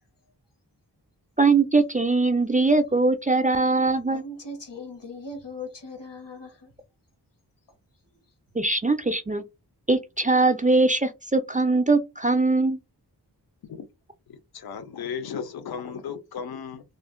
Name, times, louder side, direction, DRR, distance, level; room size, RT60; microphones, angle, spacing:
voice 1, 1.4-4.2 8.6-9.4 9.9-12.8, right 3 dB, 20° right, 0.3 m, -21 dB
voice 2, 4.1-6.7, left 2 dB, 90° left, 1.1 m, -39 dB
voice 3, 14.3-16.8, left 7 dB, 65° left, 0.5 m, -35 dB
2.5 x 2.0 x 3.6 m
wide cardioid pair, 50°, 41 cm